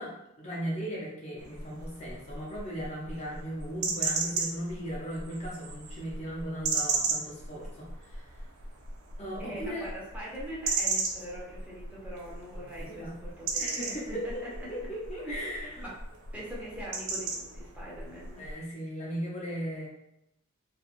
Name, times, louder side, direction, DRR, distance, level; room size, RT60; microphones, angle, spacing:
voice 1, 0.0-8.3 9.2-9.9 12.8-13.2 13.6-14.4 14.7-15.9 18.3-19.9, equal, 30° left, -4 dB, 0.6 m, -37 dB
sound 1, 1.4-18.5, right 4 dB, 80° right, 0.5 m, -36 dB
voice 2, 9.4-13.9 15.2-15.9 16.3-18.4, equal, 5° right, -7 dB, 0.7 m, -42 dB
2.9 x 2.3 x 2.4 m, 0.82 s
head